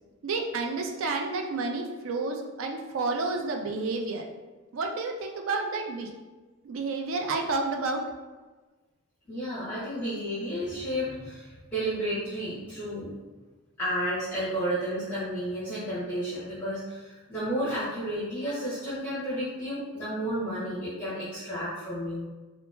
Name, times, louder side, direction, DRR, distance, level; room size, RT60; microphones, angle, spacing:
voice 1, 0.2-4.3 4.7-6.1 6.6-8.0, right 3 dB, 60° right, 3 dB, 0.3 m, -30 dB
voice 2, 9.3-13.1 13.8-22.2, equal, 10° left, -13 dB, 0.8 m, -32 dB
2.8 x 2.3 x 2.4 m, 1.2 s
head